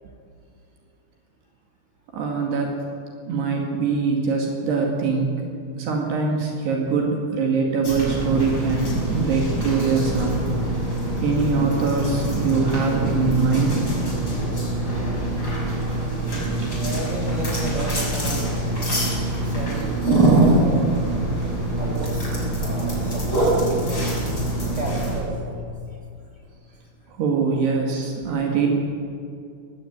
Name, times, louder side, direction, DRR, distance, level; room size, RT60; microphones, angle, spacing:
voice 1, 2.1-2.7 3.3-5.4 5.8-10.4 11.2-13.8 16.3-16.8 27.2-28.7, right 4 dB, 75° right, 0 dB, 4.2 m, -23 dB
sound 1, 7.8-25.2, right 1 dB, 20° left, 6.8 m, -24 dB
voice 2, 16.6-18.5 19.2-20.0 20.3-21.0 21.8-22.3 22.6-24.2 24.7-25.6 25.9-26.0, right 2 dB, 20° right, -3 dB, 3.5 m, -33 dB
19.0 x 16.5 x 9.3 m, 2.4 s
omnidirectional pair, 4.9 m